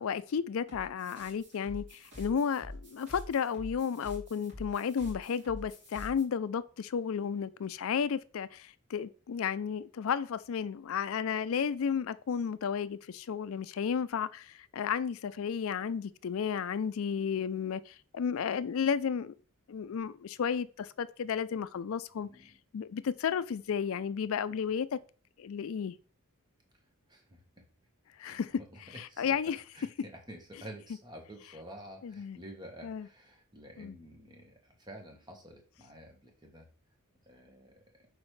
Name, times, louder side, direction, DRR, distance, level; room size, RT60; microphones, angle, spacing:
voice 1, 0.0-19.3 19.7-22.3 22.7-25.0 25.4-26.0 28.2-28.5 29.2-29.6 32.0-32.4 32.8-33.1 33.8-33.9, left 7 dB, 70° left, 0.4 m, -33 dB
sound 1, 0.7-6.2, left 1 dB, 55° right, 3.2 m, -46 dB
voice 2, 22.2-22.6 26.7-27.6 28.2-29.4 29.7-36.7 37.2-38.1, right 1 dB, 20° right, 1.3 m, -50 dB
6.2 x 4.8 x 3.2 m
head